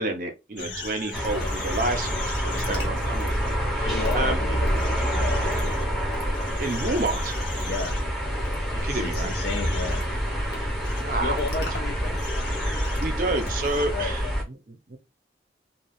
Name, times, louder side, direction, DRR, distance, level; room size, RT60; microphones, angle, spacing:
voice 1, 0.0-4.4 6.6-7.4 8.8-9.3 11.0-11.4 12.6-12.7 13.0-15.0, right 2 dB, 50° right, 0.6 m, -30 dB
sound 1, 0.6-3.5 4.0-4.1 4.7-5.8 6.1-8.0 8.4-8.5 9.1-10.0 10.5-10.6 10.8-11.0 11.4-13.9, left 2 dB, 85° left, 0.9 m, -38 dB
sound 2, 1.1-14.4, equal, ahead, 0.7 m, -27 dB
voice 2, 2.5-2.9 3.8-5.7 7.6-8.0 8.8-10.0 11.2-12.2 13.9-14.3, left 4 dB, 60° left, 0.4 m, -34 dB
2.4 x 2.3 x 3.4 m
head